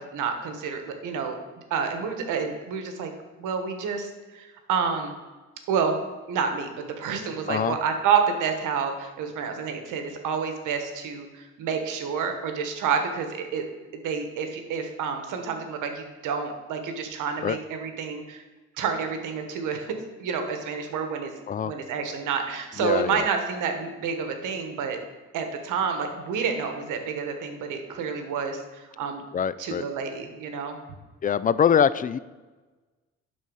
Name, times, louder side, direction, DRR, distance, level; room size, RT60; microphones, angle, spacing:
voice 1, 0.0-1.4 1.7-3.1 3.4-5.1 5.7-6.0 6.3-13.6 13.9-18.4 18.8-19.9 20.2-21.3 21.6-25.0 25.3-29.2 29.6-30.8, right 6 dB, 85° right, 5 dB, 1.3 m, -29 dB
voice 2, 22.8-23.3 29.3-29.8 31.2-32.2, left 8 dB, 30° left, 16 dB, 0.3 m, -23 dB
11.0 x 4.0 x 5.5 m, 1.2 s
cardioid pair, 90°, 30 cm